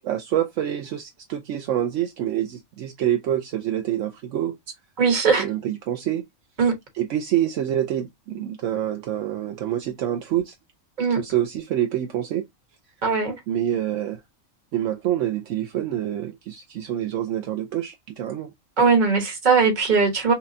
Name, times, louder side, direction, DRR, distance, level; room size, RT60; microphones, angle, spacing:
voice 1, 0.0-4.6 5.4-6.2 6.9-10.5 11.2-12.4 13.5-14.2 14.7-18.5, right 11 dB, 70° right, 0.9 m, -26 dB
voice 2, 5.0-5.4 6.6-6.7 11.0-11.2 13.0-13.4 18.8-20.3, right 5 dB, 35° right, 1.2 m, -19 dB
5.7 x 2.2 x 2.6 m
omnidirectional pair, 1.4 m